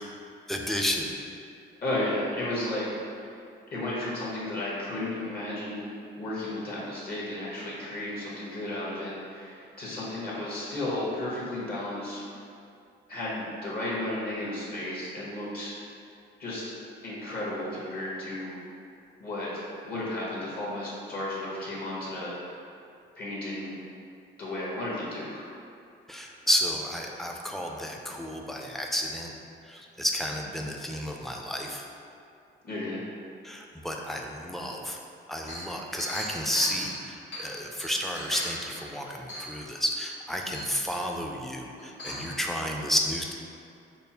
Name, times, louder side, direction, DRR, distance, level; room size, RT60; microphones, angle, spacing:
voice 1, 0.5-1.1 26.1-29.3 29.7-31.8 33.4-35.0 35.3-43.3, equal, ahead, 0 dB, 0.4 m, -31 dB
voice 2, 1.8-3.3 3.7-5.9 6.2-12.4 13.1-15.7 16.4-16.7 17.0-18.6 19.2-22.6 23.2-23.8 24.4-25.4 32.6-33.0, left 1 dB, 50° left, -6 dB, 1.0 m, -33 dB
Chink clink, 35.5-37.5 37.8-38.8 39.3-39.7 40.1-40.2 40.5-41.0 41.8-42.3, equal, 80° left, 1.3 m, -38 dB
5.2 x 2.0 x 2.8 m, 2.5 s
cardioid pair, 90°, 20 cm